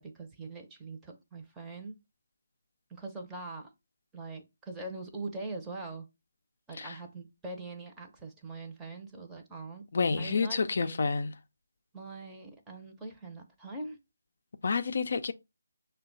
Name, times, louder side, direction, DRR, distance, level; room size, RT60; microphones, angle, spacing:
voice 1, 0.0-2.0 2.9-3.7 4.1-6.1 6.7-9.9 10.2-11.0 11.9-14.0, right 3 dB, 10° right, 0.7 m, -42 dB
voice 2, 9.9-11.4 14.6-15.3, left 4 dB, 55° left, 0.4 m, -29 dB
5.5 x 2.2 x 3.8 m
figure-of-eight pair, 155°, 0 cm